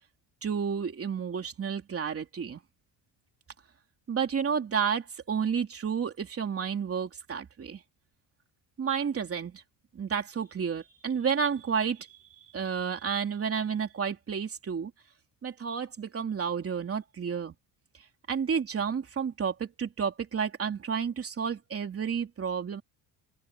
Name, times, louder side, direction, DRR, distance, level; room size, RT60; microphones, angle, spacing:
voice 1, 0.4-2.6 4.1-7.8 8.8-9.6 9.9-12.1 12.5-14.9 15.4-17.6 18.3-22.8, right 7 dB, 30° right, 3.5 m, -31 dB
open air
cardioid pair, 170°, 46 cm